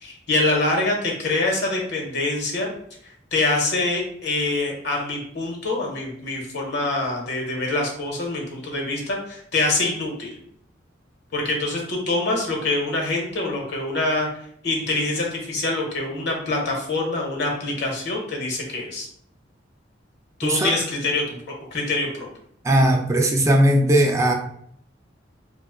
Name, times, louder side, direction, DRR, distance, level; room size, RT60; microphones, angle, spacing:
voice 1, 0.0-2.7 3.3-10.3 11.3-14.3 14.6-19.1 20.4-21.4 21.7-22.3, left 2 dB, 65° left, -1 dB, 1.0 m, -25 dB
voice 2, 20.4-20.8 22.6-24.3, right 1 dB, 15° right, 2 dB, 0.3 m, -18 dB
2.8 x 2.3 x 3.6 m, 0.66 s
head